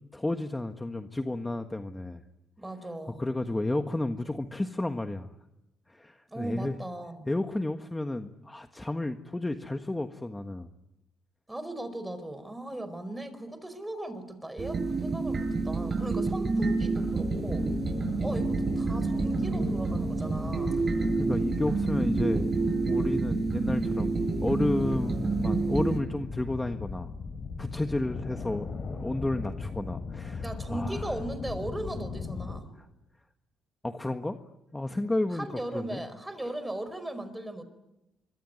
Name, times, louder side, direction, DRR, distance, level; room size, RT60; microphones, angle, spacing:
voice 1, 0.1-2.2 3.1-5.3 5.9-6.7 7.3-10.7 20.9-22.5 22.9-27.1 27.6-31.2 32.8-32.9 33.8-34.4 34.7-35.5 35.7-36.0, left 2 dB, 15° left, 6 dB, 1.5 m, -32 dB
voice 2, 2.6-3.2 6.3-7.3 11.5-17.7 18.2-20.8 30.4-32.7 35.3-37.6, right 1 dB, 10° right, 12 dB, 4.8 m, -38 dB
sound 1, 14.6-26.0, right 3 dB, 40° right, 7.6 m, -28 dB
sound 2, 17.0-32.6, left 4 dB, 45° left, 3.3 m, -38 dB
25.5 x 24.0 x 9.6 m, 0.92 s
cardioid pair, 90°, 0 cm